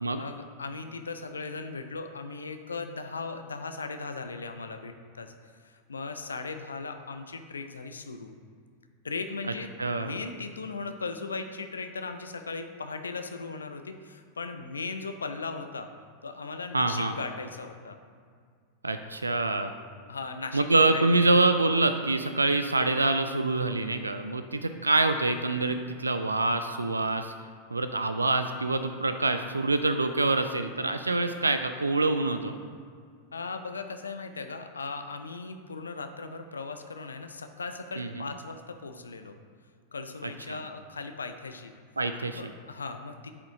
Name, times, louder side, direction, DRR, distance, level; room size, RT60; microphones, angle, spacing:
voice 1, 0.2-8.3 9.0-9.7 10.0-15.9 16.2-18.0 20.1-21.2 33.3-39.4 39.9-41.7 42.3-43.3, left 4 dB, 75° left, 7 dB, 0.4 m, -38 dB
voice 2, 9.8-10.1 16.7-17.1 18.8-19.7 20.5-27.3 27.7-32.5 38.0-38.3 40.5-40.6 42.0-42.4, right 2 dB, 80° right, 9 dB, 0.3 m, -26 dB
8.1 x 5.0 x 3.7 m, 2.1 s
figure-of-eight pair, 90°, 0 cm